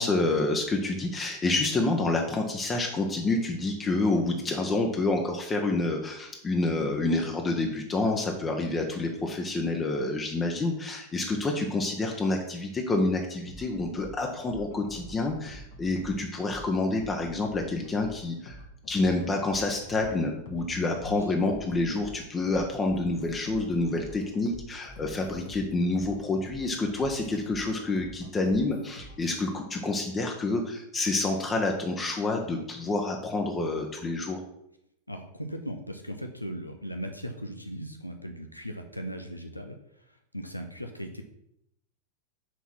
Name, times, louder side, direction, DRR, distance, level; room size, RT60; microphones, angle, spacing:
voice 1, 0.0-18.6 18.9-34.4, left 2 dB, 20° left, 2 dB, 0.9 m, -28 dB
sound 1, 13.5-29.5, equal, 50° left, 1.3 m, -47 dB
voice 2, 35.1-41.2, equal, 90° left, 5 dB, 0.7 m, -38 dB
6.2 x 4.1 x 5.9 m, 0.78 s
figure-of-eight pair, 90°, 0 cm